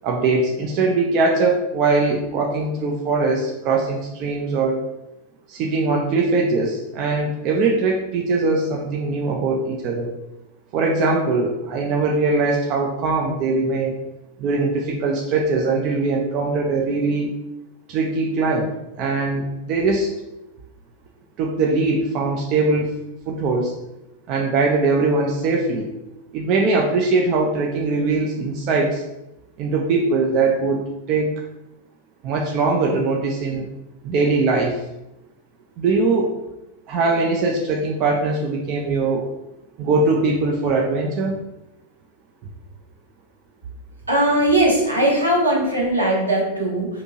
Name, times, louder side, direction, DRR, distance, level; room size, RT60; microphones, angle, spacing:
voice 1, 0.0-4.8 5.5-10.1 10.7-14.0 14.4-17.3 17.9-18.7 19.0-20.1 21.4-22.9 23.3-23.7 24.3-25.9 26.3-29.0 29.6-31.3 32.2-33.7 34.0-34.8 35.8-36.3 36.9-39.2 39.8-41.4, right 3 dB, 40° right, 0 dB, 0.4 m, -21 dB
voice 2, 44.1-46.9, right 1 dB, 80° right, -3 dB, 0.9 m, -19 dB
2.6 x 2.6 x 2.8 m, 0.91 s
figure-of-eight pair, 90°, 0 cm